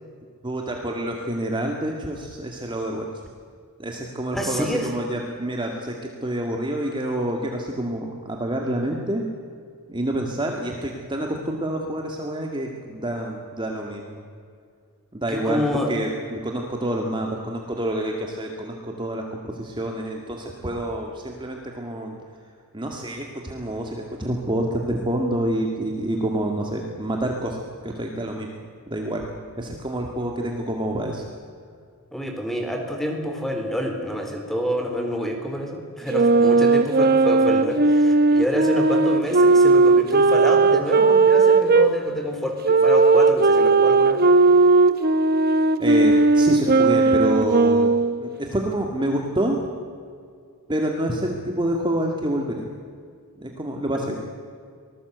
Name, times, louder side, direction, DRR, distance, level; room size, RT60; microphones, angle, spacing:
voice 1, 0.4-3.1 3.8-9.2 9.9-14.2 15.1-22.2 22.7-28.6 28.9-29.3 29.6-31.3 45.8-47.9 48.2-49.6 50.7-52.6 53.4-54.2, right 1 dB, 20° right, 1 dB, 2.0 m, -27 dB
voice 2, 4.3-4.9 15.4-15.9 32.1-44.3 53.9-54.1, equal, ahead, 3 dB, 3.7 m, -27 dB
sound 1, 36.1-41.9 42.6-48.3, right 3 dB, 45° right, 1.0 m, -17 dB
25.0 x 19.5 x 8.1 m, 2.1 s
head